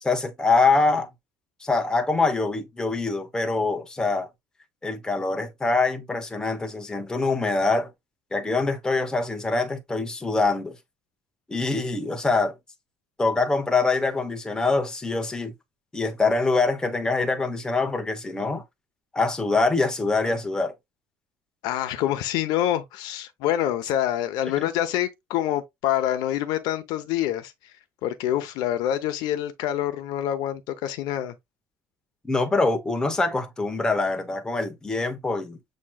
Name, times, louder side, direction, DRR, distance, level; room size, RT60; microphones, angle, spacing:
voice 1, 0.0-1.1 1.6-4.3 4.8-7.9 8.3-10.8 11.5-12.6 13.2-15.5 15.9-18.6 19.1-20.7 24.6-24.7 32.2-35.6, left 3 dB, 10° left, 0.8 m, -24 dB
voice 2, 21.6-27.5 28.0-31.3, left 12 dB, 80° left, 0.7 m, -26 dB
7.3 x 2.8 x 2.2 m
cardioid pair, 135°, 7 cm